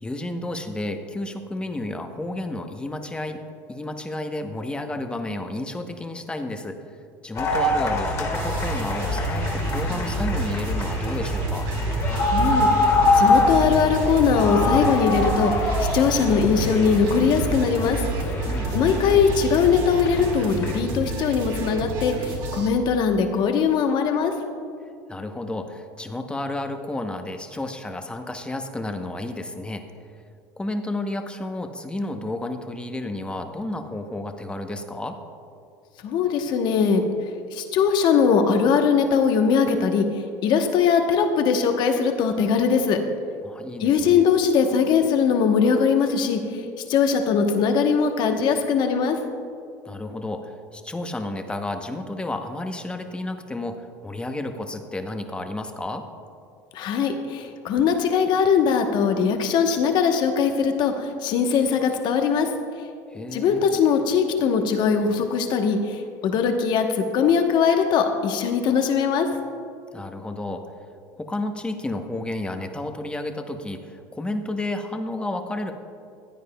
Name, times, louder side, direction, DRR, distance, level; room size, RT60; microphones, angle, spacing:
voice 1, 0.0-3.4 3.7-11.7 18.4-18.9 25.1-29.8 30.6-35.2 43.4-44.2 49.8-56.0 63.1-63.6 69.9-70.6 71.2-75.7, left 2 dB, 10° left, 6 dB, 0.8 m, -31 dB
sound 1, 7.3-20.7, left 2 dB, 35° left, 1.8 m, -24 dB
sound 2, 8.3-22.7, right 2 dB, 60° right, 1.7 m, -32 dB
voice 2, 12.3-18.0 18.7-24.3 36.0-37.1 37.5-40.1 40.4-43.0 43.8-46.6 46.9-49.2 56.7-62.5 63.3-69.3, left 6 dB, 55° left, 5 dB, 1.0 m, -21 dB
15.0 x 9.4 x 2.3 m, 2.3 s
supercardioid pair, 100°, 9 cm